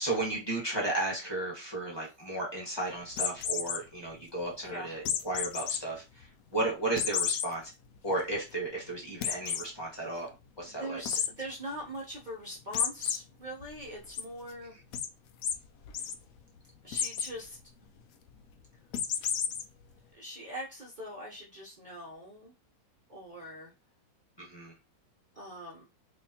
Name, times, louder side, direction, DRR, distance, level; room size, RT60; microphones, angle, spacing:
voice 1, 0.0-7.7 8.0-11.0 24.4-24.7, right 2 dB, 20° left, -4 dB, 0.9 m, -34 dB
sound 1, 3.1-3.8 5.0-5.8 6.2-6.3 7.0-7.5 7.9-8.0 8.3-8.4 9.2-9.6 11.0-11.3 12.7-13.2 13.6-14.2 14.9-15.1 15.4-15.5 15.8-16.1 16.9-17.3 18.9-19.6, left 8 dB, 85° left, 0.7 m, -31 dB
voice 2, 4.6-5.0 10.6-14.7 16.8-17.6 20.1-22.5 23.1-23.7 25.3-25.9, equal, 85° right, -3 dB, 0.4 m, -42 dB
4.2 x 2.3 x 2.8 m, 0.27 s
omnidirectional pair, 2.0 m